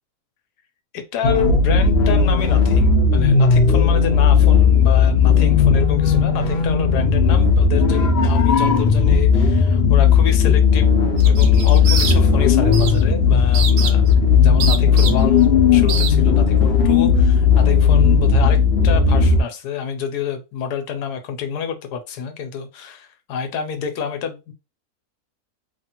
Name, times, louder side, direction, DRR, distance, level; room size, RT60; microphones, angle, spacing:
voice 1, 0.9-10.9 11.2-14.0 14.4-18.6 18.8-24.5, left 7 dB, 90° left, 1.2 m, -28 dB
sound 1, 1.2-19.4, left 6 dB, 60° left, 0.7 m, -15 dB
sound 2, 11.2-12.4 12.7-13.0 13.5-14.1 14.6-15.4 15.9-16.1, right 7 dB, 80° right, 1.1 m, -25 dB
3.2 x 2.4 x 2.8 m
omnidirectional pair, 1.7 m